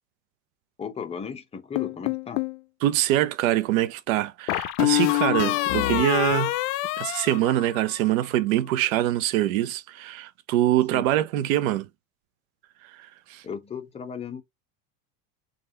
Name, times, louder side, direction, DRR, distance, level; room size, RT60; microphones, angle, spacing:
voice 1, 0.8-2.4 10.9-11.1 13.4-14.4, left 6 dB, 15° left, 0.6 m, -35 dB
sound 1, 1.8-2.6 4.5-8.1, left 20 dB, 65° left, 0.5 m, -25 dB
voice 2, 2.8-6.6 7.0-11.9 13.3-13.4, right 13 dB, 85° right, 0.6 m, -24 dB
3.3 x 2.4 x 4.2 m
supercardioid pair, 120°, 41 cm